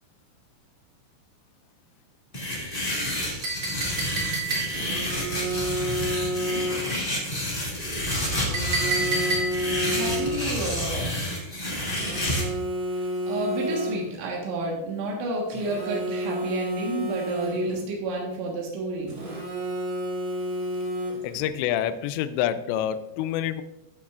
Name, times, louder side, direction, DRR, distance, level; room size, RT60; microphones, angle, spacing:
sound 1, 2.3-12.4, left 1 dB, 25° left, 1.2 m, -29 dB
Chink clink, 3.4-5.0 8.5-9.8, right 3 dB, 55° right, 1.5 m, -29 dB
Telephone, 4.7-7.0 8.3-10.7 11.9-14.3 15.5-17.9 19.1-21.5, equal, 35° right, 2.9 m, -30 dB
voice 1, 9.9-11.2 12.9-19.2, right 2 dB, 85° right, -1 dB, 3.8 m, -30 dB
voice 2, 21.2-23.6, left 10 dB, 85° left, 12 dB, 2.8 m, -27 dB
15.5 x 6.1 x 2.5 m, 0.93 s
omnidirectional pair, 5.1 m